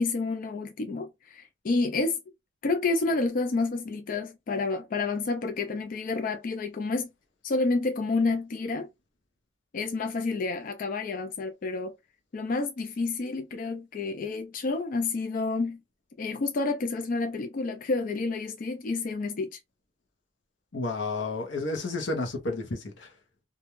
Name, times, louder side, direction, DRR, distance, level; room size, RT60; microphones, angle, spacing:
voice 1, 0.0-2.2 2.6-7.1 7.4-8.9 9.7-11.9 12.3-15.8 16.2-19.6, left 3 dB, 50° left, 0.4 m, -29 dB
voice 2, 20.7-23.1, left 2 dB, 90° left, 0.8 m, -31 dB
2.5 x 2.2 x 2.9 m
head